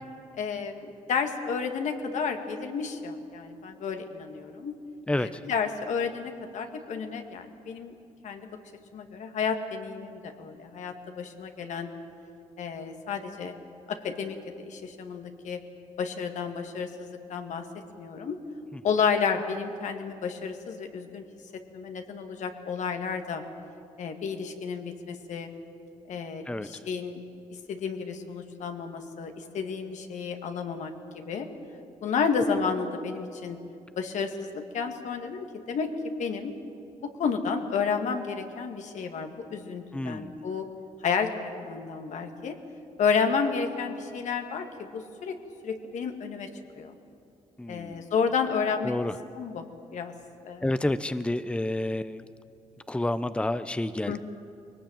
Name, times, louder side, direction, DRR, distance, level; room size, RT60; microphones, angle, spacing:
voice 1, 0.4-4.7 5.2-7.9 8.2-8.5 8.9-11.9 12.6-13.6 13.9-15.6 16.0-17.6 18.0-18.4 18.8-21.2 21.7-23.4 24.0-25.5 26.1-27.2 27.7-31.5 32.0-33.6 34.0-35.9 36.2-36.5 37.0-40.7 41.0-42.5 43.0-45.4 45.6-46.5 46.8-46.9 47.7-48.9 49.4-49.6 49.9-50.1 50.4-50.7 54.1-54.2, left 5 dB, 70° left, 5 dB, 2.1 m, -31 dB
voice 2, 5.1-5.4 26.4-26.8 39.9-40.4 47.6-48.0 48.8-49.2 50.6-52.2 52.9-54.2, left 1 dB, 10° left, 12 dB, 0.8 m, -29 dB
22.0 x 18.5 x 9.0 m, 2.6 s
supercardioid pair, 60°, 13 cm